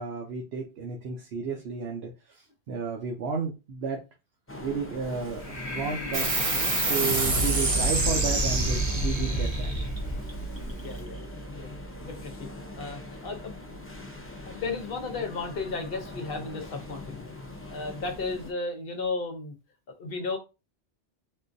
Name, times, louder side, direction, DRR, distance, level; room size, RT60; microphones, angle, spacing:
voice 1, 0.0-4.0 4.6-9.9, right 5 dB, 75° right, 2 dB, 0.9 m, -33 dB
sound 1, 4.5-18.5, left 2 dB, 20° left, 0.4 m, -42 dB
Breathing, 5.1-11.0, left 1 dB, 35° left, 1.1 m, -33 dB
sound 2, 6.1-13.0, right 3 dB, 35° right, 0.8 m, -29 dB
voice 2, 10.8-11.2 11.6-11.7 12.0-12.5 12.8-13.5 14.5-17.3 17.7-19.5 19.9-20.4, left 3 dB, 60° left, 3 dB, 1.0 m, -34 dB
3.7 x 2.4 x 2.6 m, 0.27 s
omnidirectional pair, 1.1 m